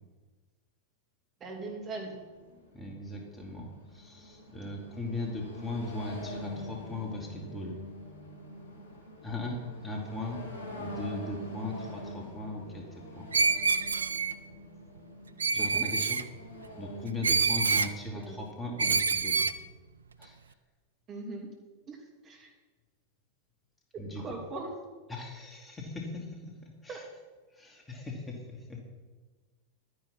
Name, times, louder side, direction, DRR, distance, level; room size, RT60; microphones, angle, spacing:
voice 1, 1.4-2.1 15.6-15.9 18.1-18.4 21.1-21.5 21.9-22.5 24.1-24.7 26.9-27.0, right 3 dB, 30° right, 1 dB, 2.8 m, -40 dB
sound 1, 1.5-17.1, left 1 dB, 90° right, 3.5 m, -45 dB
voice 2, 2.7-7.7 9.2-10.4 10.7-13.3 15.5-16.2 16.8-19.4 20.2-20.4 24.0-24.2 25.1-27.0 27.5-28.8, left 2 dB, 15° left, 0 dB, 2.4 m, -38 dB
Screech, 13.3-14.3 15.4-16.2 17.2-17.9 18.8-19.6, right 5 dB, 75° right, 0.5 m, -26 dB
12.0 x 9.7 x 5.7 m, 1.3 s
figure-of-eight pair, 90°, 0 cm